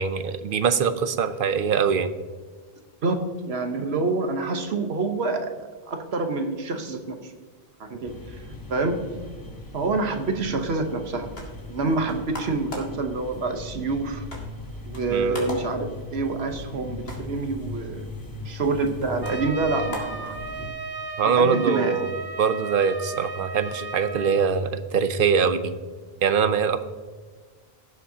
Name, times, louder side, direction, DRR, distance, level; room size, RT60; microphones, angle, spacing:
voice 1, 0.0-2.1 15.1-15.4 21.2-25.7 26.2-26.8, right 6 dB, 60° right, 11 dB, 0.8 m, -23 dB
voice 2, 3.0-5.5 5.9-7.3 7.8-8.4 8.7-9.0 9.7-11.3 11.7-14.3 14.8-18.1 18.4-20.5 21.2-21.9, right 3 dB, 75° right, 6 dB, 1.3 m, -27 dB
sound 1, 8.0-20.7, left 2 dB, 20° left, 0.8 m, -39 dB
sound 2, 11.3-20.9, left 1 dB, 65° left, 2.3 m, -43 dB
Trumpet, 19.2-24.5, right 4 dB, 25° right, 0.6 m, -35 dB
16.5 x 7.2 x 2.8 m, 1.4 s
omnidirectional pair, 1.1 m